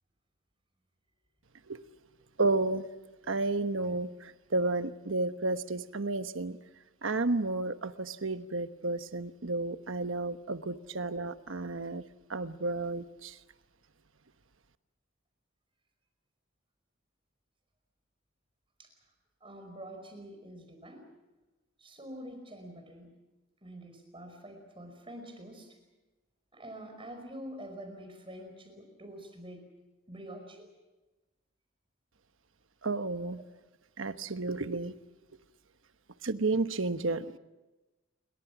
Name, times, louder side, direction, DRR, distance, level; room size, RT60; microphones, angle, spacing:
voice 1, 2.4-2.9 3.3-6.6 7.0-12.0 12.3-13.4 32.8-33.4 34.0-35.0 36.2-37.4, right 2 dB, 70° right, 10 dB, 1.1 m, -32 dB
voice 2, 19.4-21.1 21.8-23.1 23.6-25.8 26.5-29.7 30.1-30.7, right 1 dB, 25° right, 6 dB, 5.2 m, -46 dB
29.0 x 24.0 x 6.0 m, 1.1 s
head